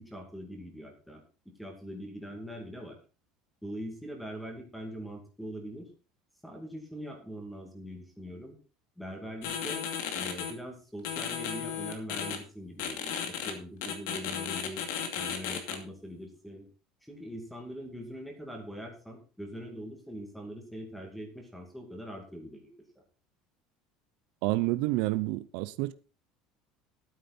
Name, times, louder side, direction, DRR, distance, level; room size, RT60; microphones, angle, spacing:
voice 1, 0.0-3.0 3.6-5.9 6.4-8.6 9.0-9.8 10.1-14.8 15.1-16.7 17.0-22.7, equal, ahead, 2.3 m, -42 dB
sound 1, 9.4-10.5 11.0-12.4 12.8-13.5 13.8-15.8, left 8 dB, 75° left, 2.4 m, -34 dB
voice 2, 24.4-25.9, right 19 dB, 60° right, 0.6 m, -29 dB
12.0 x 9.2 x 4.2 m
cardioid pair, 170°, 0 cm